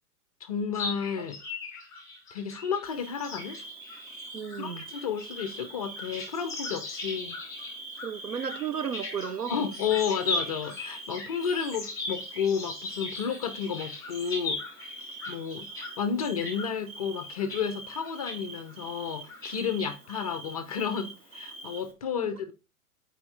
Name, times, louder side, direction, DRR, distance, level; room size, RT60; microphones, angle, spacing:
voice 1, 0.4-1.4 2.3-3.6 4.6-7.4 9.5-14.6 15.3-15.7 16.0-22.5, left 7 dB, 25° left, 0.4 m, -32 dB
sound 1, 0.7-15.9 16.2-16.7 17.2-17.6 18.0-18.4 18.7-18.8 19.3-19.9, left 3 dB, 5° left, 2.4 m, -39 dB
Bird / Cricket, 2.8-21.9, right 2 dB, 60° right, 3.6 m, -44 dB
voice 2, 4.3-4.9 8.0-9.6 22.1-22.3, right 7 dB, 80° right, 0.7 m, -34 dB
6.9 x 4.5 x 3.2 m
figure-of-eight pair, 105°, 46 cm